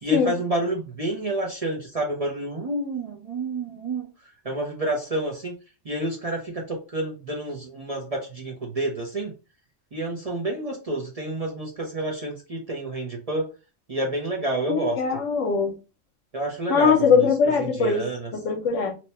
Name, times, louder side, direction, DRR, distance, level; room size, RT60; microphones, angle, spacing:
voice 1, 0.0-4.1 4.4-5.6 5.8-9.3 9.9-13.5 13.9-15.0 16.3-17.3 17.6-18.3, right 2 dB, 40° right, 0.6 m, -29 dB
voice 2, 14.7-15.7 16.7-18.1 18.3-18.9, left 5 dB, 80° left, 1.0 m, -21 dB
3.0 x 2.2 x 4.0 m
omnidirectional pair, 1.3 m